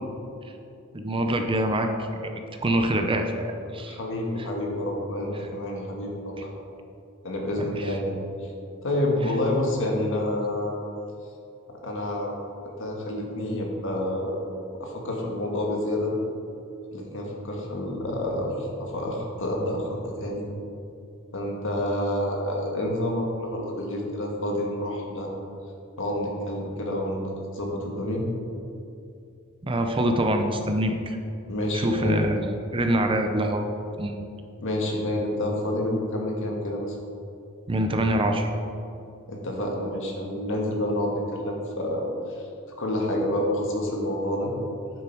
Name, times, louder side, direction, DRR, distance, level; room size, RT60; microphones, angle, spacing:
voice 1, 0.9-2.3 2.6-4.0 6.4-6.5 7.6-7.9 29.6-31.2 31.7-33.6 34.0-34.2 37.7-38.5, right 1 dB, 25° right, 5 dB, 0.7 m, -25 dB
voice 2, 3.8-6.5 7.2-8.2 8.8-10.8 11.7-12.3 12.6-14.4 14.8-16.1 16.9-20.5 21.3-25.3 26.0-28.2 31.5-32.3 34.6-37.0 39.3-42.4 42.8-44.5, left 1 dB, 65° left, 0 dB, 1.7 m, -28 dB
9.7 x 7.3 x 4.6 m, 2.6 s
head